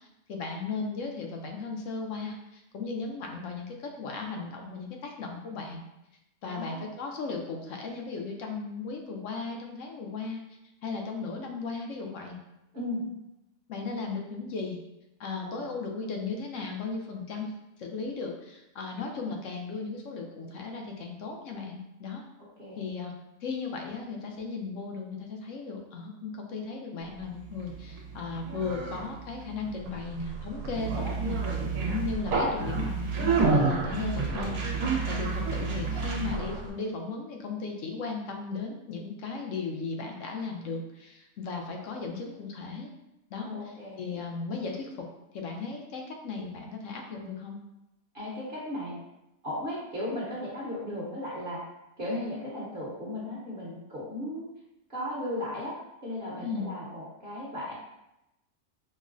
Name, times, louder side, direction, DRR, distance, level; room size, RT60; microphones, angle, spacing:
voice 1, 0.0-5.8 6.4-10.4 10.8-12.4 13.7-14.8 15.2-17.5 17.8-22.2 22.8-23.1 23.4-31.6 31.8-34.6 35.1-42.9 43.3-43.5 44.0-45.1 45.3-47.6 56.4-56.7, left 4 dB, 70° left, 2 dB, 0.9 m, -36 dB
voice 2, 6.4-6.9 12.7-13.1 15.4-15.7 22.6-22.9 35.8-36.6 43.4-44.2 48.1-48.9 49.4-51.6 52.0-54.5 54.9-55.7 56.0-57.7, left 1 dB, 45° right, -6 dB, 0.9 m, -36 dB
Conversation, 27.2-36.7, right 4 dB, 90° right, 1.2 m, -29 dB
5.2 x 2.0 x 2.4 m, 0.90 s
omnidirectional pair, 1.5 m